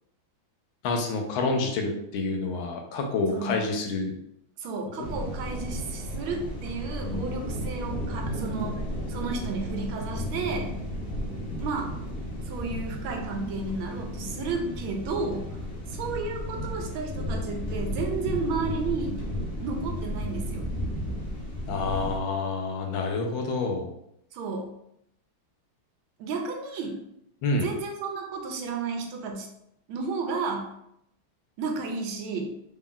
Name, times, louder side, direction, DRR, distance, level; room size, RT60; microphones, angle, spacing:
voice 1, 0.8-4.1 5.0-5.1 21.7-23.9 27.4-27.7, left 3 dB, 75° left, 3 dB, 1.4 m, -28 dB
voice 2, 3.3-3.6 4.6-10.7 11.6-11.9 12.5-15.6 15.9-19.2 19.6-20.7 24.3-24.7 26.2-27.0 27.6-29.5 29.9-30.7 31.6-32.5, right 4 dB, 85° right, 3 dB, 1.4 m, -32 dB
sound 1, 5.0-22.2, equal, 45° left, 0.7 m, -33 dB
4.0 x 2.3 x 3.7 m, 0.76 s
omnidirectional pair, 2.2 m